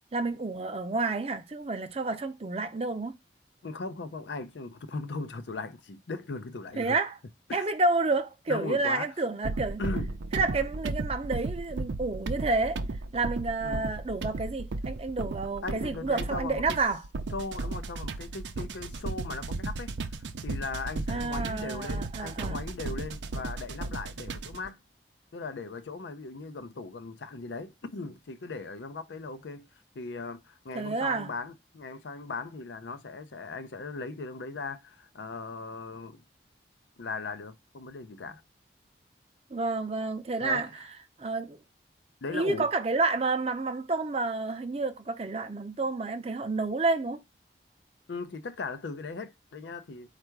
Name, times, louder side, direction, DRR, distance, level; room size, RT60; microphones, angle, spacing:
voice 1, 0.1-3.2 6.8-7.1 7.5-9.8 10.3-12.8 13.1-17.0 21.1-22.6 30.7-31.3 39.5-40.7 41.2-41.6 42.3-47.2, right 3 dB, 35° right, 0.5 m, -29 dB
voice 2, 3.6-7.0 7.5-7.6 8.5-9.1 9.8-10.2 13.6-13.8 15.6-16.6 17.3-19.9 20.4-24.8 25.3-29.7 29.9-36.2 37.0-38.4 40.4-40.7 42.2-42.7 48.1-50.1, left 3 dB, 85° left, 0.6 m, -38 dB
sound 1, 9.4-24.7, right 3 dB, 85° right, 0.5 m, -35 dB
4.5 x 2.4 x 4.5 m
head